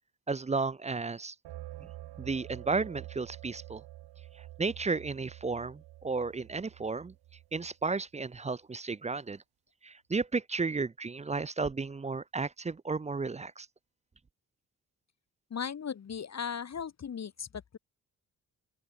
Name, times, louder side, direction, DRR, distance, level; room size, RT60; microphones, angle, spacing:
voice 1, 0.3-1.3 2.2-3.8 4.6-7.1 7.5-9.4 9.8-13.7, right 4 dB, 20° right, 0.5 m, -33 dB
sound 1, 1.4-8.0, right 15 dB, 80° right, 1.6 m, -48 dB
voice 2, 15.5-17.8, left 7 dB, 45° left, 1.1 m, -37 dB
open air
supercardioid pair, 55°, 39 cm